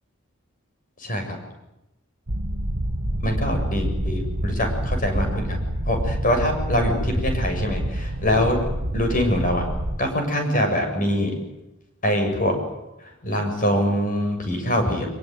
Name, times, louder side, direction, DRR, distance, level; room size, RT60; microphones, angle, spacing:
voice 1, 1.0-1.4 3.2-5.6 5.9-8.6 8.9-9.6 10.0-11.3 12.0-12.6 13.2-15.1, equal, 40° left, 4 dB, 7.6 m, -23 dB
sound 1, 2.3-10.0, right 1 dB, 85° right, 2.1 m, -27 dB
25.0 x 23.0 x 9.4 m, 0.91 s
head